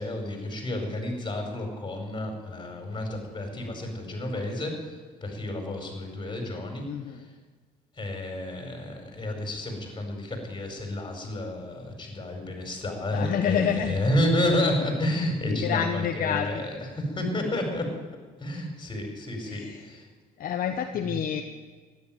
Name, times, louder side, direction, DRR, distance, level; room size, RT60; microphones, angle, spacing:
voice 1, 0.0-4.9 5.2-6.8 8.0-17.9 18.4-20.1 20.9-21.2, left 1 dB, 25° left, 3 dB, 5.1 m, -30 dB
voice 2, 6.9-7.3 13.1-13.9 15.5-16.5 19.5-19.8 20.4-21.4, left 8 dB, 55° left, 5 dB, 1.1 m, -28 dB
13.5 x 11.0 x 9.1 m, 1.5 s
cardioid pair, 110°, 17 cm